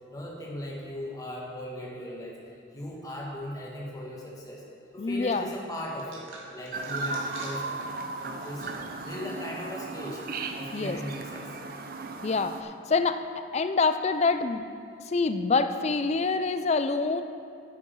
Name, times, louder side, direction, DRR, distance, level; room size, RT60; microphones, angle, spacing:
voice 1, 0.1-2.4 2.7-4.6 4.9-6.3 6.5-8.6 9.0-10.2 10.5-11.5, left 1 dB, 20° left, -3 dB, 1.4 m, -38 dB
voice 2, 5.0-5.5 10.7-11.0 12.2-13.2 13.5-14.6 15.1-17.2, left 4 dB, 35° left, 9 dB, 0.4 m, -26 dB
sound 1, 6.0-9.0 9.4-9.5 10.3-10.7, right 3 dB, 85° right, 2.1 m, -47 dB
Chirp tweet, 6.7-12.6, right 3 dB, 45° right, 0.6 m, -36 dB
10.0 x 8.4 x 4.7 m, 2.4 s
head